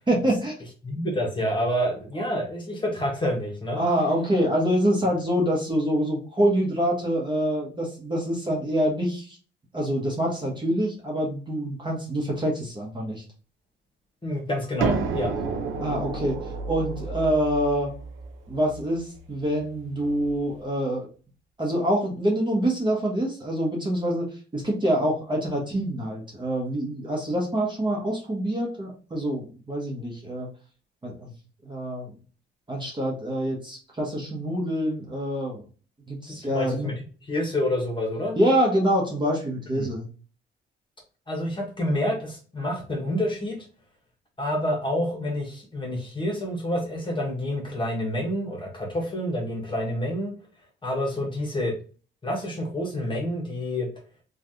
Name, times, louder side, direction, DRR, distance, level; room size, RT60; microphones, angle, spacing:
voice 1, 0.1-0.5 3.7-9.4 9.7-13.2 15.8-17.9 18.5-21.1 21.6-30.5 31.0-31.3 31.6-32.1 32.7-35.6 36.1-36.9 38.4-40.1, equal, 25° right, -2 dB, 1.1 m, -26 dB
voice 2, 0.8-3.8 14.2-15.3 36.3-36.9 37.2-38.4 39.7-39.9 41.3-43.6 44.4-50.3 50.8-51.7 52.2-53.9, left 1 dB, 25° left, 0 dB, 1.3 m, -28 dB
sound 1, 14.8-20.4, right 4 dB, 85° right, 0.5 m, -31 dB
3.2 x 2.4 x 2.7 m, 0.38 s
cardioid pair, 90°, 20 cm